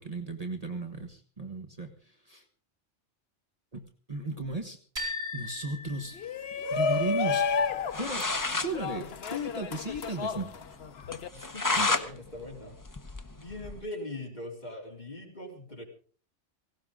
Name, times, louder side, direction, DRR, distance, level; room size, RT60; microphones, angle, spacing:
voice 1, 0.0-2.4 3.7-4.8 5.3-6.2 6.7-7.5 7.9-8.3 8.5-10.5 11.8-11.9, right 2 dB, 35° right, 4 dB, 1.4 m, -35 dB
sound 1, 5.0-6.9, left 3 dB, 60° right, 4.9 m, -38 dB
Shout, 6.2-11.3, left 5 dB, 60° left, 1.1 m, -31 dB
sound 2, 7.6-7.7 7.9-8.7 9.1-9.2 9.4-9.5 9.9-10.0 10.4-10.5 11.1-12.1 12.4-13.8, left 3 dB, 20° left, 0.7 m, -30 dB
voice 2, 11.3-12.8 13.3-15.8, left 1 dB, 35° left, 0 dB, 3.5 m, -41 dB
18.0 x 17.0 x 3.7 m, 0.42 s
omnidirectional pair, 1.2 m